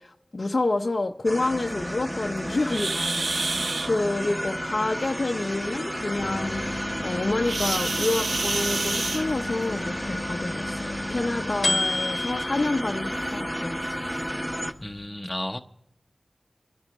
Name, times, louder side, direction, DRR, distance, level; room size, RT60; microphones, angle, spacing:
voice 1, 0.0-6.7 7.0-13.8, left 2 dB, 55° left, 0.7 m, -28 dB
sound 1, 1.2-14.7, equal, 5° right, 1.1 m, -32 dB
sound 2, 2.7-3.9 7.4-9.7 10.9-11.1 11.6-11.7 12.3-12.4 13.2-13.3 13.8-14.0, right 3 dB, 75° right, 0.6 m, -29 dB
sound 3, 6.2-15.1, left 2 dB, 75° left, 1.1 m, -34 dB
voice 2, 14.8-15.6, left 1 dB, 15° left, 0.9 m, -32 dB
27.5 x 11.0 x 3.1 m
wide cardioid pair, 55°, 0 cm